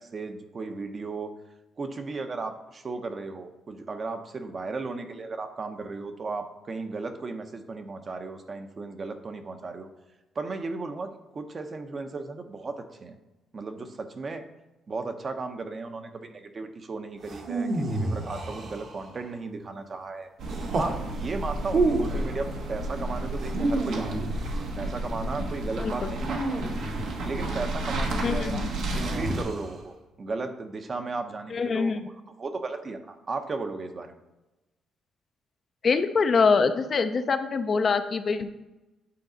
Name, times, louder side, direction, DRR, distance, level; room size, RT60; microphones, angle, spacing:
voice 1, 0.0-1.3 1.8-9.9 10.3-13.2 13.5-14.4 14.9-20.3 20.7-24.2 24.7-26.6 27.2-28.6 28.9-31.9 32.4-34.2, right 3 dB, 40° right, 7 dB, 0.7 m, -35 dB
sound 1, 17.2-19.2 20.5-21.0 21.6-22.3 23.4-24.7 26.2-27.4 29.0-29.8, right 2 dB, 55° right, 1.1 m, -30 dB
sound 2, 20.4-29.4, right 1 dB, 80° right, 1.1 m, -32 dB
voice 2, 28.2-28.7 31.5-32.0 35.8-38.5, left 5 dB, 45° left, 9 dB, 0.5 m, -24 dB
8.5 x 4.0 x 3.9 m, 1.0 s
cardioid pair, 90°, 0 cm